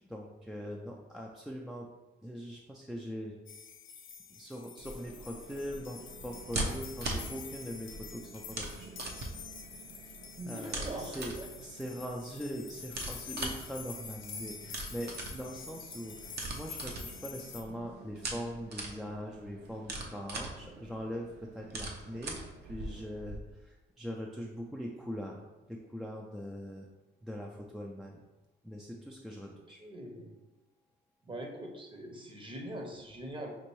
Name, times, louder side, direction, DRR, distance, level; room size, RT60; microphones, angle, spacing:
voice 1, 0.0-1.9 2.2-3.4 4.3-8.9 10.0-10.2 10.5-25.4 25.7-26.9 27.2-28.2 28.6-29.8, equal, ahead, -1 dB, 0.4 m, -42 dB
sound 1, 3.5-17.6, left 6 dB, 80° left, 0.6 m, -47 dB
sound 2, 4.8-23.4, right 2 dB, 55° right, 0.8 m, -42 dB
sound 3, 5.4-23.2, right 7 dB, 85° right, 0.4 m, -56 dB
voice 2, 10.4-11.5 29.5-30.3 31.3-33.6, right 1 dB, 25° right, 2 dB, 0.8 m, -43 dB
5.2 x 2.5 x 3.1 m, 1.1 s
cardioid pair, 90°, 20 cm